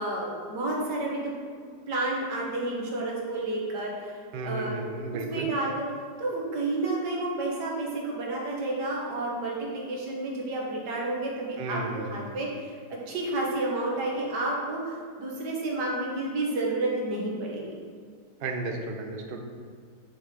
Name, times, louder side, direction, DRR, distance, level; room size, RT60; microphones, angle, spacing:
voice 1, 0.0-1.3 1.9-4.2 4.4-4.8 5.3-5.9 6.2-11.8 12.1-12.8 13.1-17.8, right 2 dB, 85° right, -3 dB, 1.9 m, -30 dB
voice 2, 4.3-5.5 11.6-12.3 18.4-19.4, right 3 dB, 55° right, 3 dB, 0.6 m, -33 dB
6.3 x 6.0 x 3.7 m, 2.1 s
omnidirectional pair, 1.8 m